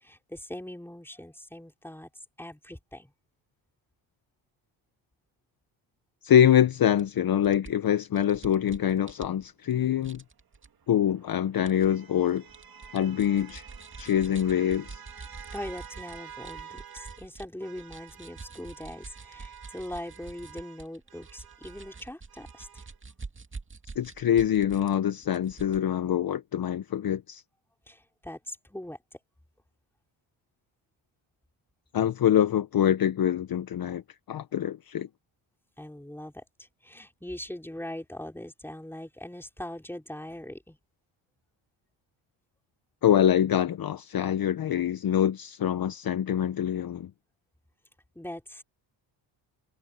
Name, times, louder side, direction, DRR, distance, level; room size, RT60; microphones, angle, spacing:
voice 1, 0.0-2.1 2.4-3.1 15.5-22.8 27.9-29.0 35.8-40.8 48.1-48.6, left 1 dB, 5° left, 4.3 m, -41 dB
voice 2, 6.2-10.2 10.9-12.4 12.9-13.7 14.0-15.0 24.0-27.4 31.9-34.0 34.3-35.1 43.0-47.1, left 10 dB, 45° left, 0.9 m, -25 dB
sound 1, 7.0-7.1 7.4-9.7 10.0-10.7 11.7-11.9 12.3-17.5 17.7-25.0 25.2-25.8, right 4 dB, 25° right, 2.5 m, -46 dB
sound 2, 10.6-17.3 17.6-23.0, right 7 dB, 45° right, 1.9 m, -49 dB
cardioid pair, 110°, 49 cm